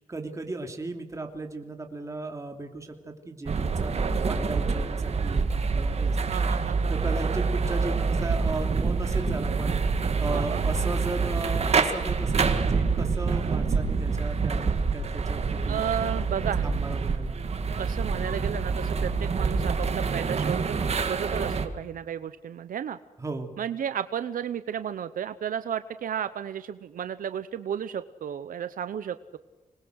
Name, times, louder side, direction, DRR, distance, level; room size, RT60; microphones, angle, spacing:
voice 1, 0.0-6.3 6.9-9.7 10.2-15.8 16.6-17.4 23.2-23.5, right 2 dB, 20° right, 4 dB, 3.0 m, -36 dB
sound 1, 3.5-21.7, right 4 dB, 50° right, 1.9 m, -26 dB
voice 2, 6.3-7.2 10.3-10.6 15.7-16.6 17.8-23.0 23.6-29.4, right 9 dB, 90° right, 12 dB, 0.8 m, -33 dB
26.5 x 21.0 x 6.4 m, 1.2 s
wide cardioid pair, 140°, 14 cm